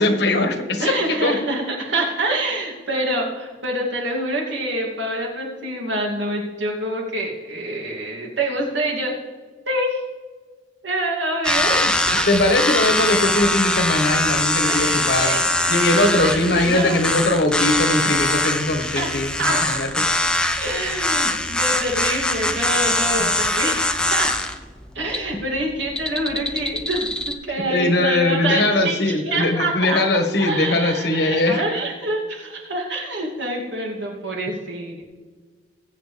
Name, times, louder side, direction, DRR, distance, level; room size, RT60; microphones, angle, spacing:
voice 1, 0.0-1.4 12.3-15.4 15.7-20.0 23.2-23.3 27.7-31.6, left 2 dB, 65° left, 6 dB, 1.4 m, -20 dB
voice 2, 0.8-9.1 9.7-10.0 10.8-12.2 14.7-15.4 16.0-17.1 18.9-19.1 19.4-19.8 20.5-24.3 24.9-30.0 30.4-35.0, right 1 dB, 80° right, -1 dB, 2.7 m, -26 dB
sound 1, 11.4-27.3, left 1 dB, 5° left, 0.6 m, -22 dB
20.5 x 7.9 x 3.4 m, 1.5 s
head